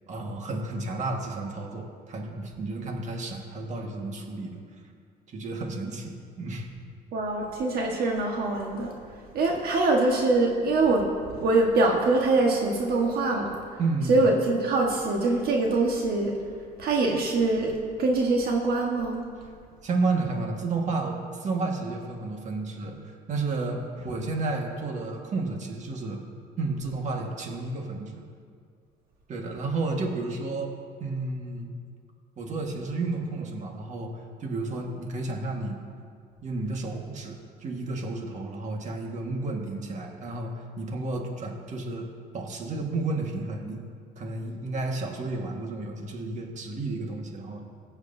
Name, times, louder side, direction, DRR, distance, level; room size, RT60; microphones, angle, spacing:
voice 1, 0.1-4.6 5.3-6.7 13.8-14.3 19.4-19.5 19.8-26.2 26.6-28.2 29.3-30.7 31.0-31.7 32.4-35.8 36.4-42.1 42.3-43.8 44.2-47.7, right 3 dB, 45° right, 1 dB, 1.7 m, -32 dB
voice 2, 7.1-8.9 9.3-11.1 11.4-13.5 14.1-16.3 16.8-17.7 18.0-19.2, right 2 dB, 65° right, 0 dB, 1.5 m, -23 dB
21.5 x 8.1 x 2.7 m, 2.2 s
cardioid pair, 110°, 17 cm